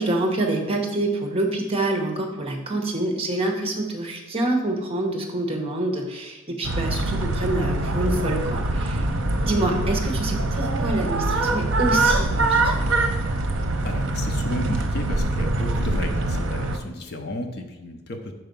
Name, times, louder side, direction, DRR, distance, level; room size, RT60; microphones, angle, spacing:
voice 1, 0.0-9.1 9.4-12.8, right 2 dB, 25° right, 2 dB, 0.9 m, -26 dB
sound 1, 6.6-16.8, right 2 dB, 55° right, 0.7 m, -24 dB
voice 2, 13.8-18.3, left 1 dB, 50° left, 5 dB, 0.6 m, -33 dB
5.6 x 4.6 x 5.3 m, 1.1 s
head